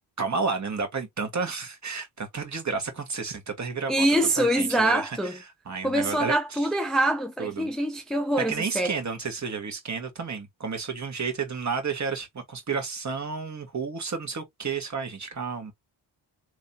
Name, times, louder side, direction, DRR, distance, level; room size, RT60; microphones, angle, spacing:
voice 1, 0.2-4.1 4.4-5.3 5.7-6.7 7.4-7.7 8.4-15.7, right 5 dB, 35° right, 1.7 m, -31 dB
voice 2, 3.9-5.4 5.8-8.9, right 1 dB, ahead, 0.6 m, -24 dB
3.4 x 3.0 x 2.8 m
cardioid pair, 105°, 47 cm